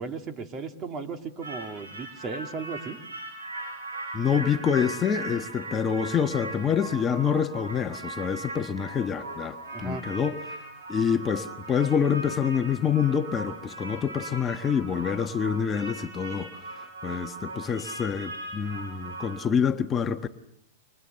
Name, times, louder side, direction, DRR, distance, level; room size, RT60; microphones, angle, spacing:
voice 1, 0.0-3.0 9.7-10.1, right 4 dB, 30° right, 2.6 m, -36 dB
sound 1, 1.4-19.4, right 2 dB, 90° right, 7.4 m, -39 dB
voice 2, 4.1-10.6 10.9-20.3, left 7 dB, 25° left, 1.3 m, -27 dB
29.5 x 25.0 x 6.8 m
hypercardioid pair, 115°, 0 cm